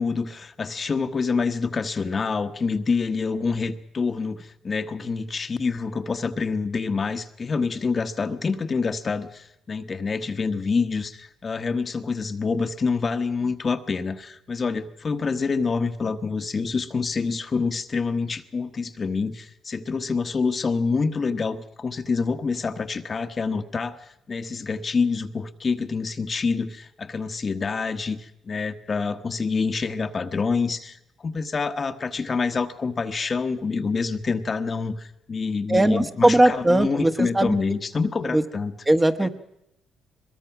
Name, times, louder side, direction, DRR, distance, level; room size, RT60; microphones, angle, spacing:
voice 1, 0.0-38.7 39.2-39.3, left 4 dB, 35° left, 8 dB, 1.2 m, -27 dB
voice 2, 35.7-37.6 38.3-38.4 38.9-39.3, right 1 dB, 15° right, 7 dB, 1.3 m, -19 dB
22.5 x 21.5 x 6.0 m, 0.84 s
cardioid pair, 90°, 0 cm